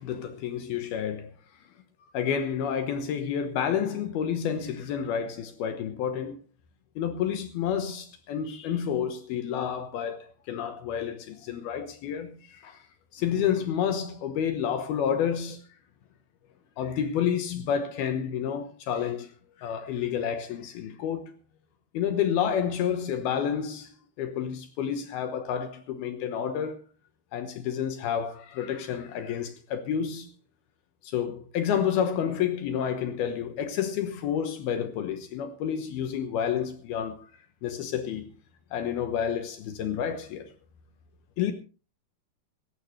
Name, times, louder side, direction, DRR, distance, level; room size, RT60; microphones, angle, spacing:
voice 1, 0.0-1.3 2.0-6.4 7.0-12.8 13.1-15.6 16.8-19.3 19.6-21.3 21.9-23.9 24.2-26.8 27.3-30.3 31.0-37.3 37.6-38.3 38.7-40.5 41.4-41.5, left 8 dB, 70° left, 2.9 m, -29 dB
19.5 x 15.5 x 3.2 m
omnidirectional pair, 4.8 m